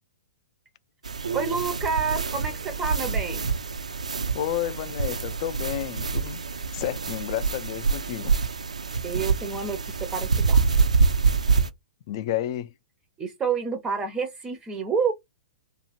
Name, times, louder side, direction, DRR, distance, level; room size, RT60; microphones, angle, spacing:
sound 1, 1.0-11.7, right 4 dB, 85° right, 0.4 m, -26 dB
voice 1, 1.3-3.4 9.0-10.6 13.2-15.1, right 5 dB, 20° right, 0.5 m, -29 dB
voice 2, 4.3-6.4 6.7-8.3 12.1-12.7, left 12 dB, 50° left, 0.4 m, -31 dB
2.8 x 2.4 x 2.9 m
hypercardioid pair, 115°, 4 cm